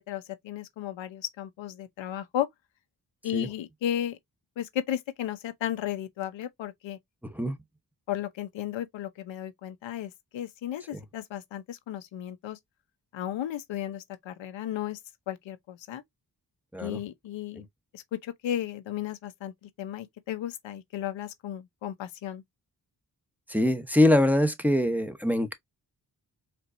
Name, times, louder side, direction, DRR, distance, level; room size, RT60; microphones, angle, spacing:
voice 1, 0.1-2.5 3.2-4.2 4.6-7.0 8.1-12.6 13.1-15.0 15.3-16.0 16.8-17.7 17.9-19.5 19.8-22.4, left 11 dB, 85° left, 0.7 m, -34 dB
voice 2, 7.2-7.6 10.9-11.0 16.7-17.0 17.6-17.7 23.5-25.5, left 1 dB, 5° right, 0.8 m, -24 dB
4.4 x 2.6 x 2.5 m
cardioid pair, 45°, 44 cm